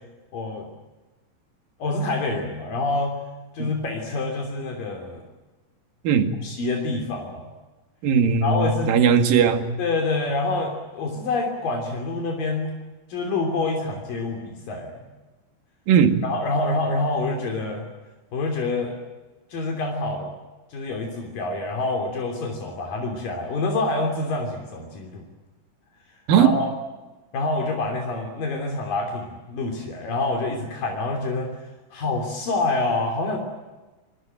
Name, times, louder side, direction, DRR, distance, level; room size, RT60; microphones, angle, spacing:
voice 1, 0.3-0.7 1.8-3.2 3.5-5.2 6.4-7.5 8.4-8.9 9.8-12.7 13.1-15.1 16.2-17.9 18.3-18.9 19.5-20.3 20.7-25.2 26.3-26.7 27.3-31.5 31.9-33.4, left 2 dB, 75° left, 2 dB, 4.9 m, -26 dB
voice 2, 6.0-6.4 8.0-9.7 15.9-16.2 26.3-26.5, right 7 dB, 80° right, 8 dB, 3.8 m, -18 dB
26.5 x 23.0 x 9.1 m, 1.2 s
omnidirectional pair, 4.0 m